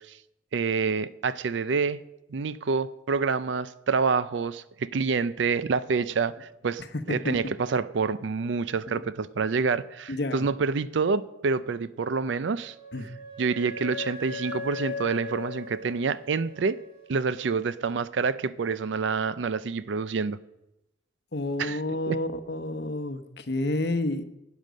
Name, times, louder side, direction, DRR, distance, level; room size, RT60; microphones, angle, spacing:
voice 1, 0.5-2.0 2.3-6.8 7.1-12.7 13.4-16.8 17.1-20.4 21.6-21.8 22.1-22.2, right 5 dB, 80° right, 16 dB, 0.5 m, -27 dB
voice 2, 10.1-10.5 12.9-13.1 21.3-24.2, left 2 dB, 60° left, 10 dB, 0.9 m, -30 dB
Wind instrument woodwind instrument, 12.5-17.1, left 3 dB, 30° left, 2.7 m, -39 dB
12.0 x 9.2 x 6.4 m, 0.90 s
head